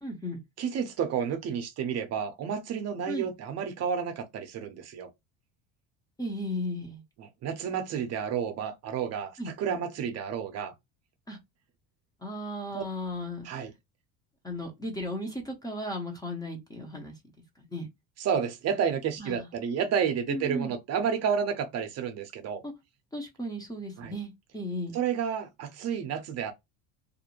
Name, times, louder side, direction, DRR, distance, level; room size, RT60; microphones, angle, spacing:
voice 1, 0.0-0.4 3.1-3.3 6.2-7.0 9.4-9.5 11.3-11.4 12.2-13.5 14.4-17.1 17.6-17.9 19.2-19.5 20.3-20.8 22.6-22.7 23.1-25.0, left 1 dB, 10° left, 0.6 m, -35 dB
voice 2, 0.6-5.1 7.2-10.7 12.7-12.8 13.4-13.7 18.2-22.6 24.0-24.1 24.9-26.5, right 7 dB, 45° right, 0.6 m, -31 dB
2.4 x 2.1 x 2.9 m
cardioid pair, 125°, 38 cm